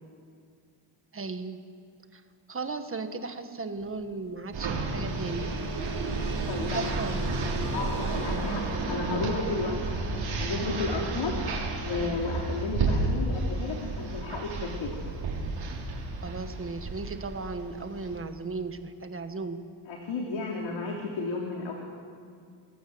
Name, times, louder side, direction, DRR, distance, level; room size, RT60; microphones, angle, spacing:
voice 1, 1.1-1.6 2.1-2.2 2.5-5.5 6.7-7.5 16.2-19.6, right 3 dB, 25° right, 8 dB, 1.6 m, -36 dB
sound 1, 3.8-3.9 4.3-15.3 16.1-16.2 16.7-16.8, right 2 dB, 50° right, 4.5 m, -38 dB
sound 2, 4.5-18.2, right 3 dB, 70° right, 6.1 m, -32 dB
voice 2, 6.5-6.9 7.7-9.8 10.4-11.4 11.8-15.0 19.9-21.7, left 3 dB, 70° left, -1 dB, 3.6 m, -32 dB
29.5 x 21.0 x 8.0 m, 2.2 s
wide cardioid pair, 170°, 47 cm